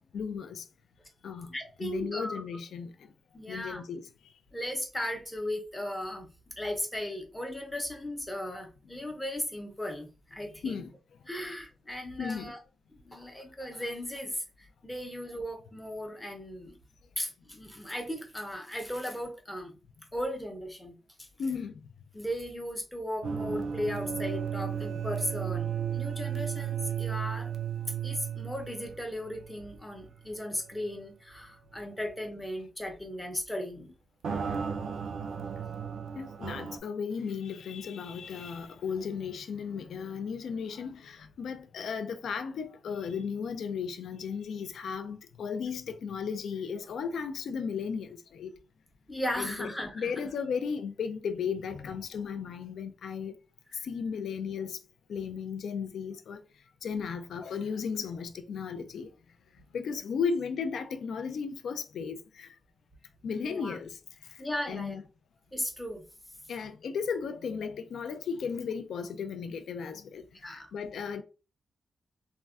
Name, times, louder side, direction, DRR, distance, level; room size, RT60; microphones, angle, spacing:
voice 1, 0.1-0.6 1.2-2.9 3.5-4.1 10.6-10.9 12.2-12.5 21.4-21.8 36.2-48.5 49.4-53.3 53.8-54.8 55.1-56.4 56.8-59.1 59.7-62.5 63.2-64.0 64.7-65.0 66.5-71.2, left 6 dB, 80° left, 0.3 m, -35 dB
voice 2, 1.5-2.4 3.3-3.8 4.5-6.3 6.6-10.8 11.3-12.6 13.0-16.8 17.2-19.7 20.1-21.3 22.1-27.5 28.0-33.9 49.1-50.1 59.8-59.9 63.3-63.8 64.4-65.0 65.5-66.0 70.4-70.7, left 1 dB, 10° left, 0.6 m, -36 dB
sound 1, 23.2-29.8 30.1-30.2 30.8-30.9 34.2-36.8, right 8 dB, 80° right, 0.4 m, -34 dB
3.5 x 2.1 x 2.3 m
wide cardioid pair, 165°, 0 cm